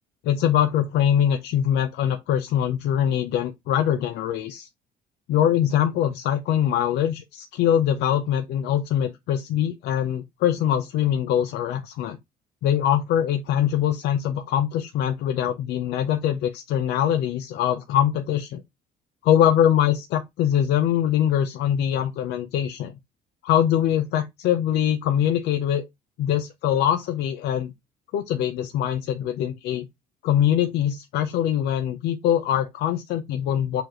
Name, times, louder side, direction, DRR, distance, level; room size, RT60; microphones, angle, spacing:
voice 1, 0.2-4.7 5.3-12.2 12.6-18.6 19.2-23.0 23.4-25.8 26.2-27.7 28.1-29.8 30.2-33.8, left 10 dB, 80° left, 0.7 m, -23 dB
6.9 x 2.5 x 3.0 m
cardioid pair, 110°, 17 cm